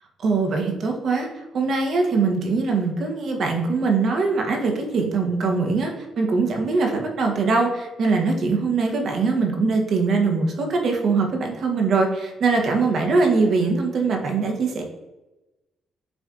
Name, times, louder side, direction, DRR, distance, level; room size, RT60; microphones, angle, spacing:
voice 1, 0.2-1.3 1.5-14.8, right 4 dB, 60° right, 2 dB, 0.9 m, -22 dB
7.0 x 2.6 x 2.4 m, 1.1 s
cardioid pair, 90°, 0 cm